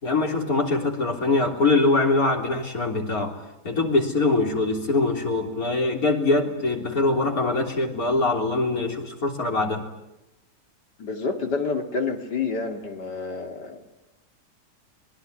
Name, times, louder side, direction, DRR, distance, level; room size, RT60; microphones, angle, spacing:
voice 1, 0.0-3.4 3.6-9.8, left 3 dB, 60° left, 3 dB, 4.0 m, -23 dB
voice 2, 11.0-13.8, left 4 dB, 85° left, 5 dB, 3.2 m, -28 dB
26.5 x 21.0 x 9.8 m, 0.92 s
omnidirectional pair, 1.8 m